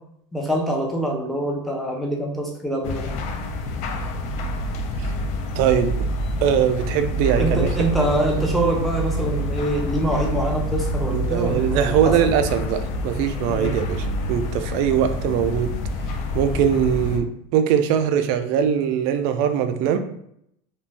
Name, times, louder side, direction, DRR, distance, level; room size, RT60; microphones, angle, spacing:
voice 1, 0.3-3.2 7.4-12.2 13.5-13.7, right 1 dB, ahead, -1 dB, 0.6 m, -24 dB
sound 1, 2.8-17.2, left 1 dB, 50° left, 0.4 m, -27 dB
voice 2, 5.6-5.9 6.4-7.7 11.1-15.7 16.3-20.0, right 8 dB, 60° right, 8 dB, 0.4 m, -21 dB
2.4 x 2.2 x 3.3 m, 0.72 s
supercardioid pair, 130°, 15 cm